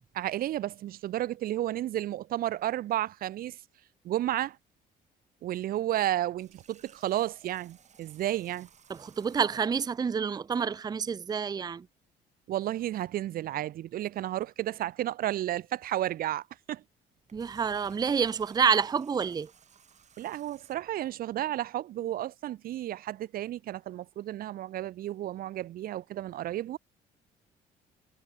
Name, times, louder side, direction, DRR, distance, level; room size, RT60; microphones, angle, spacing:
voice 1, 0.1-3.6 4.0-4.6 5.4-8.7 12.5-16.8 20.2-26.8, right 13 dB, 60° right, 0.7 m, -32 dB
Water tap faucet, 6.4-9.8 17.2-21.0, right 7 dB, 45° right, 6.6 m, -59 dB
voice 2, 8.9-11.9 17.3-19.5, right 6 dB, 25° right, 0.6 m, -28 dB
cardioid pair, 110°, 17 cm